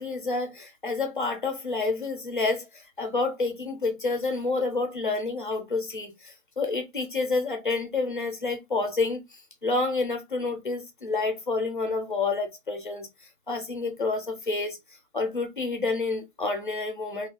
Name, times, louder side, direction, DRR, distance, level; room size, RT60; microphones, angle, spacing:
voice 1, 0.0-2.7 3.0-9.2 9.6-13.1 13.5-14.8 15.1-17.3, left 3 dB, 40° left, 0.6 m, -29 dB
2.3 x 2.3 x 2.7 m
hypercardioid pair, 180°, 40 cm